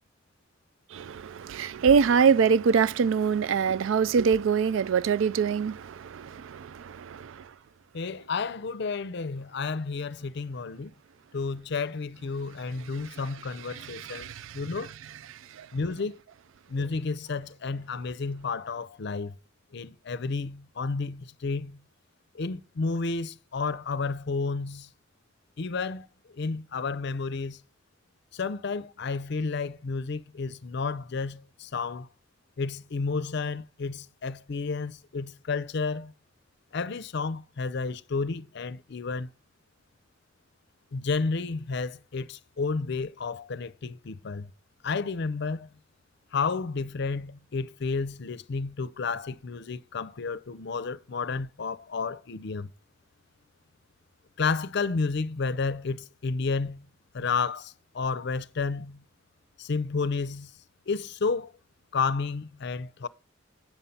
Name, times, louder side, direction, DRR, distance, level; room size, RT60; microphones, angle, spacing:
voice 1, 0.9-7.4 13.8-14.6 15.6-15.7, right 6 dB, 75° right, 0.4 m, -24 dB
voice 2, 7.9-10.9 11.3-14.9 15.7-16.2 16.7-19.3 19.7-21.8 22.3-24.9 25.6-26.1 26.3-27.6 28.3-32.1 32.6-36.1 36.7-39.3 40.9-44.5 44.8-45.7 46.3-52.7 54.4-56.9 57.1-59.0 59.6-60.5 60.9-61.5 61.9-63.1, left 4 dB, 60° left, 0.5 m, -31 dB
9.1 x 5.5 x 5.7 m
head